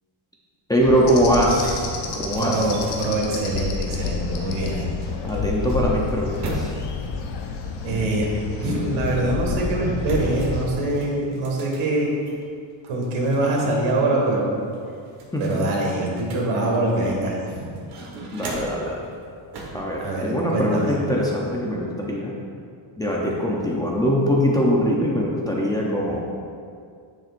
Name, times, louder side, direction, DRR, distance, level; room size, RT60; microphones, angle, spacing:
voice 1, 0.7-2.7 4.0-4.1 5.2-6.7 15.3-15.7 18.3-19.1 19.7-22.3 23.0-26.2, equal, 10° left, -4 dB, 0.5 m, -22 dB
sound 1, 0.8-10.6, left 5 dB, 60° left, 0.8 m, -30 dB
sound 2, 1.0-1.1 1.4-4.1 5.0-7.0 7.8-9.4 10.0-12.4 12.8-13.9 14.2-14.3 14.7-17.3 17.7-18.9 19.5-19.9, right 2 dB, 55° right, 1.4 m, -38 dB
sound 3, 1.1-4.1 4.4-4.7, left 8 dB, 75° left, 1.2 m, -31 dB
voice 2, 2.4-4.9 7.8-8.3 8.6-12.1 12.9-14.6 15.4-17.7 20.0-20.9, right 2 dB, 85° right, -1 dB, 1.9 m, -24 dB
8.9 x 7.5 x 2.5 m, 2.3 s
cardioid pair, 165°, 47 cm